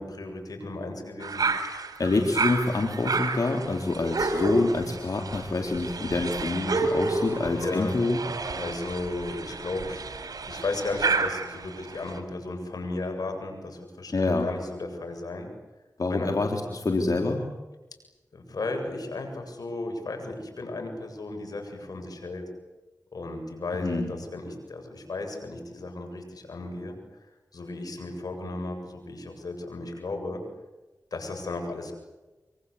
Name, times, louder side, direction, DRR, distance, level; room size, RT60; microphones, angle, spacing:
voice 1, 0.0-1.5 7.5-8.0 8.5-15.5 16.1-16.3 18.3-22.4 23.1-27.0 27.5-30.4 31.1-31.9, left 2 dB, 85° left, 4 dB, 7.8 m, -35 dB
sound 1, 1.2-12.2, right 3 dB, 85° right, 4.0 m, -31 dB
voice 2, 2.0-8.2 14.1-14.5 16.0-17.4 23.8-24.1, left 3 dB, 70° left, 3 dB, 3.7 m, -26 dB
26.5 x 25.0 x 8.5 m, 1.1 s
cardioid pair, 40°, 6 cm